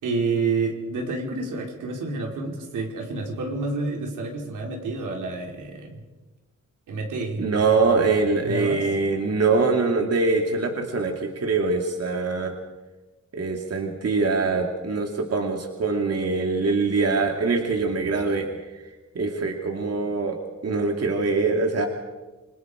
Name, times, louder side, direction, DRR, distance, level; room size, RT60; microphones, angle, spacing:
voice 1, 0.0-6.0 6.9-7.4 8.4-8.9, right 3 dB, 90° right, 0 dB, 4.4 m, -29 dB
voice 2, 7.4-12.5 13.3-18.5 19.1-20.4 20.6-21.9, right 3 dB, 55° right, 3 dB, 2.5 m, -23 dB
27.5 x 21.0 x 5.0 m, 1.2 s
cardioid pair, 75°, 30 cm